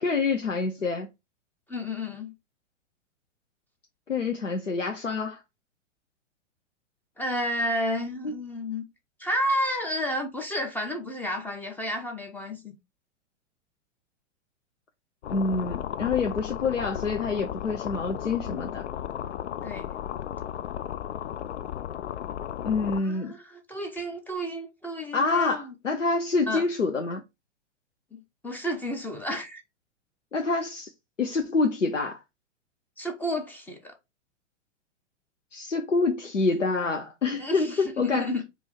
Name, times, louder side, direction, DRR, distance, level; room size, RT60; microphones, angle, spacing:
voice 1, 0.0-1.1 4.1-5.4 8.2-8.3 15.3-18.8 22.6-23.3 25.1-27.2 30.3-30.9 31.2-32.2 35.5-38.3, left 4 dB, 90° left, 0.8 m, -27 dB
voice 2, 1.7-2.3 7.2-8.8 9.2-12.8 19.6-19.9 23.0-25.7 26.5-26.7 28.1-29.6 33.0-33.9 37.4-38.4, equal, 5° left, 0.5 m, -31 dB
sound 1, 15.2-23.0, left 10 dB, 65° left, 0.5 m, -35 dB
4.7 x 2.5 x 4.5 m
figure-of-eight pair, 105°, 37 cm